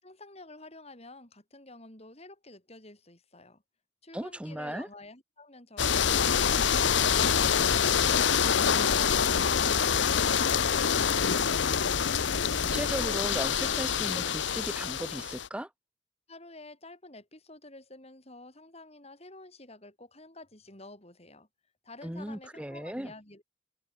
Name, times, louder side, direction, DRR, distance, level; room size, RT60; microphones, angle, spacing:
voice 1, 0.0-3.6 4.0-6.7 16.3-21.5 21.8-23.4, left 2 dB, 30° left, 5.6 m, -50 dB
voice 2, 4.1-4.9 12.7-15.7 22.0-23.1, equal, 5° right, 0.9 m, -36 dB
sound 1, 5.8-15.5, left 7 dB, 65° left, 0.8 m, -26 dB
head